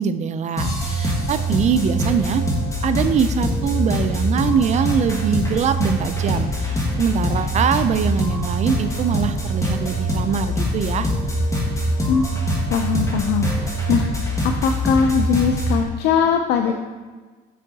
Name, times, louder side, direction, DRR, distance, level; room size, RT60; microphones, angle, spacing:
voice 1, 0.0-2.4 2.8-11.1, right 7 dB, 45° right, 11 dB, 0.4 m, -22 dB
sound 1, 0.6-15.8, equal, 20° left, 1.6 m, -23 dB
voice 2, 12.7-14.1 14.4-16.7, left 6 dB, 80° left, 5 dB, 0.5 m, -20 dB
6.3 x 5.5 x 4.0 m, 1.3 s
cardioid pair, 110°, 17 cm